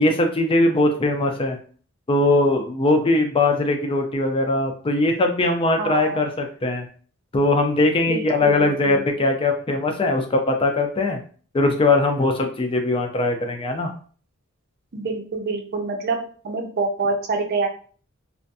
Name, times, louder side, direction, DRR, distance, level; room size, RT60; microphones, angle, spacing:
voice 1, 0.0-1.6 2.1-6.9 7.3-11.2 11.5-13.9, left 2 dB, 25° left, 4 dB, 0.4 m, -20 dB
voice 2, 5.8-6.2 8.1-9.0 14.9-17.7, right 3 dB, 50° right, 3 dB, 0.6 m, -26 dB
2.5 x 2.2 x 2.6 m, 0.43 s
head